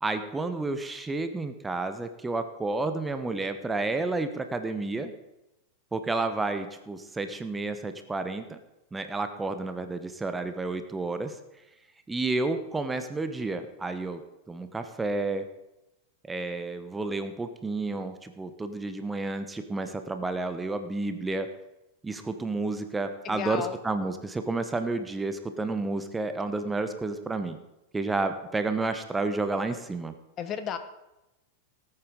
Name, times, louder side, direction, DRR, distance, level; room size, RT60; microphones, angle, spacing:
voice 1, 0.0-5.1 5.9-8.6 8.9-11.4 12.1-14.2 14.5-15.5 16.3-21.5 22.0-27.6 27.9-30.1, right 3 dB, 10° right, 9 dB, 1.0 m, -31 dB
voice 2, 23.2-23.8 30.4-30.8, left 8 dB, 30° left, 10 dB, 1.0 m, -33 dB
18.5 x 8.8 x 3.9 m, 0.95 s
figure-of-eight pair, 90°, 0 cm